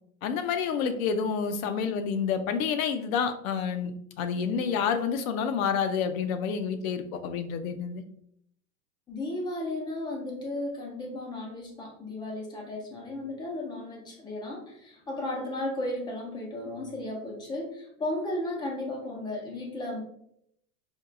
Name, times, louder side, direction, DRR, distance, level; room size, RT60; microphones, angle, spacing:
voice 1, 0.2-8.0, left 6 dB, 65° left, 9 dB, 0.6 m, -29 dB
voice 2, 9.1-20.0, left 1 dB, 10° left, 0 dB, 0.3 m, -34 dB
4.5 x 2.3 x 2.4 m, 0.71 s
hypercardioid pair, 115°, 44 cm